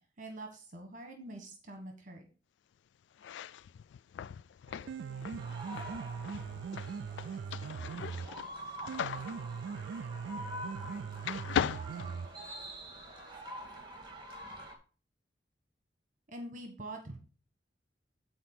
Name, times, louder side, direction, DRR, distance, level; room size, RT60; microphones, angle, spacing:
voice 1, 0.2-2.3 16.3-17.2, right 1 dB, 45° right, 4 dB, 1.4 m, -45 dB
sound 1, 3.1-10.9 11.2-12.9, left 8 dB, 80° left, 0.3 m, -39 dB
Piano, 4.7-12.7, right 6 dB, 80° right, 0.3 m, -41 dB
voice 2, 5.0-8.5 9.1-10.4 10.8-14.2, left 2 dB, 45° left, -1 dB, 3.2 m, -63 dB
sound 2, 5.4-14.7, equal, 25° right, 2.0 m, -46 dB
9.5 x 4.4 x 6.0 m, 0.37 s
head